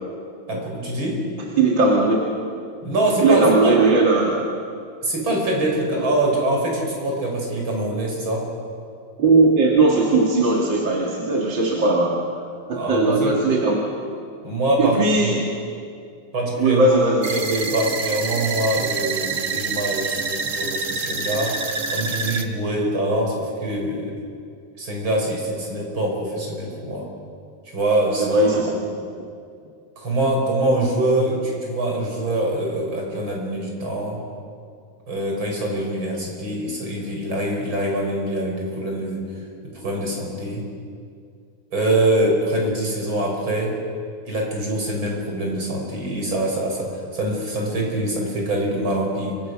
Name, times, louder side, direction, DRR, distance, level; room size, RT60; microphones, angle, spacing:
voice 1, 0.5-1.2 2.8-3.8 5.0-8.5 12.7-13.4 14.4-15.4 16.3-16.9 17.2-21.6 21.9-24.1 24.8-27.1 27.7-28.8 30.0-34.2 35.1-39.3 39.6-40.7 41.7-43.8 44.2-49.4, right 1 dB, 85° right, -1 dB, 6.8 m, -24 dB
voice 2, 1.6-2.2 3.2-4.4 9.2-12.2 12.7-13.8 14.8-15.5 16.6-17.3 28.2-28.8, right 3 dB, 70° right, -2 dB, 3.1 m, -18 dB
sound 1, 17.2-22.4, right 4 dB, 40° right, 1.7 m, -27 dB
29.0 x 24.5 x 6.5 m, 2.3 s
omnidirectional pair, 2.1 m